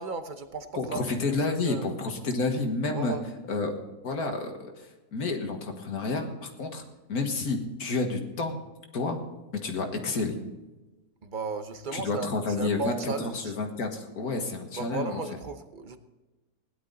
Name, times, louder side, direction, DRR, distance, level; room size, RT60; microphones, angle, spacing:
voice 1, 0.0-1.0 1.6-1.8 2.9-3.2 11.2-13.5 14.8-16.0, right 4 dB, 40° right, 9 dB, 0.9 m, -35 dB
voice 2, 0.7-3.1 3.5-3.8 4.0-4.7 5.1-6.8 7.1-8.6 8.9-9.2 9.5-10.4 11.9-15.2, left 3 dB, 75° left, 3 dB, 2.0 m, -30 dB
17.0 x 11.5 x 4.0 m, 1.1 s
omnidirectional pair, 1.6 m